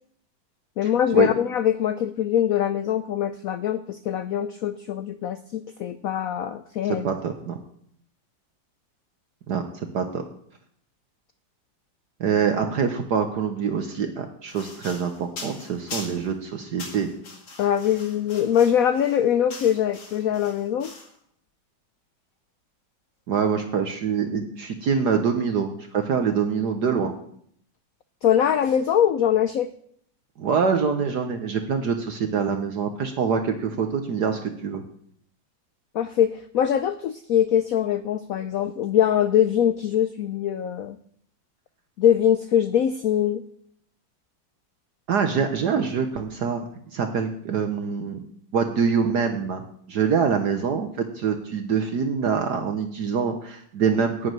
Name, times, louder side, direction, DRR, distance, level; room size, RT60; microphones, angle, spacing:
voice 1, 0.8-7.1 17.6-20.9 28.2-29.7 35.9-41.0 42.0-43.4, left 9 dB, 85° left, 12 dB, 0.7 m, -22 dB
voice 2, 6.8-7.6 9.5-10.2 12.2-17.1 23.3-27.1 30.4-34.8 45.1-46.6 46.9-48.2 48.5-49.6 49.9-50.9 51.1-54.3, right 6 dB, 60° right, 6 dB, 1.5 m, -25 dB
sound 1, 14.5-16.3 16.8-21.2, left 3 dB, 55° left, 2.7 m, -41 dB
12.0 x 6.2 x 9.0 m, 0.67 s
omnidirectional pair, 2.1 m